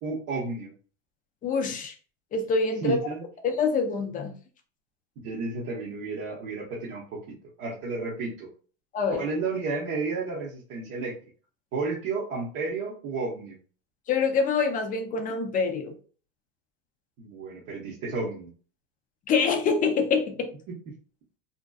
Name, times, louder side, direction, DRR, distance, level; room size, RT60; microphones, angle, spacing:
voice 1, 0.0-0.7 2.8-3.2 5.2-8.5 9.2-11.1 11.7-13.6 17.2-18.5, right 3 dB, 45° right, -5 dB, 0.9 m, -32 dB
voice 2, 1.4-1.9 2.3-3.0 3.4-4.3 8.9-9.3 14.1-15.9 19.3-20.5, left 5 dB, 25° left, 4 dB, 0.4 m, -25 dB
2.6 x 2.2 x 2.2 m, 0.40 s
hypercardioid pair, 110°, 38 cm